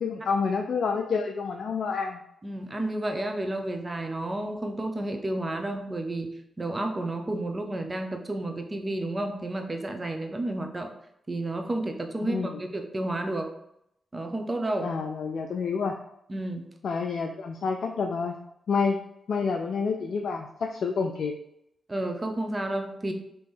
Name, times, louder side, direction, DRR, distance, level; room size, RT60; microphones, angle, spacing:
voice 1, 0.0-2.2 12.3-12.6 14.8-16.0 16.8-18.4 18.7-19.0 19.3-21.4, left 5 dB, 70° left, 4 dB, 0.3 m, -28 dB
voice 2, 2.4-10.9 11.3-13.5 14.1-14.9 16.3-16.7 21.9-23.1, right 1 dB, 35° right, 4 dB, 0.8 m, -31 dB
3.5 x 3.0 x 4.3 m, 0.78 s
supercardioid pair, 40°, 0 cm